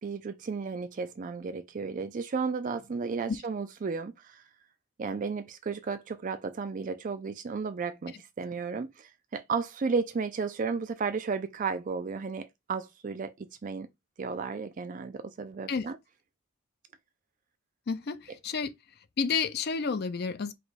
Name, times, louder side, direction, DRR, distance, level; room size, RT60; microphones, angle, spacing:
voice 1, 0.0-4.4 5.0-13.9 14.2-16.0, right 5 dB, 40° right, 0.4 m, -33 dB
voice 2, 17.9-18.7 19.2-20.5, left 5 dB, 50° left, 0.5 m, -30 dB
4.9 x 2.3 x 4.0 m
head